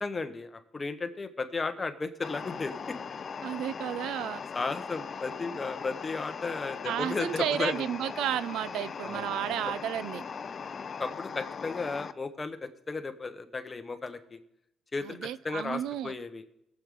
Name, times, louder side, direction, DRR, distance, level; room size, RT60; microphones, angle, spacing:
voice 1, 0.0-2.8 4.5-7.8 9.0-9.3 11.0-14.4 14.9-16.4, left 3 dB, 25° left, 1.1 m, -34 dB
sound 1, 2.2-12.1, left 6 dB, 40° left, 0.5 m, -39 dB
voice 2, 3.4-4.4 6.8-10.2 15.0-16.1, right 11 dB, 85° right, 0.4 m, -32 dB
20.5 x 7.6 x 3.7 m
cardioid pair, 110°, 0 cm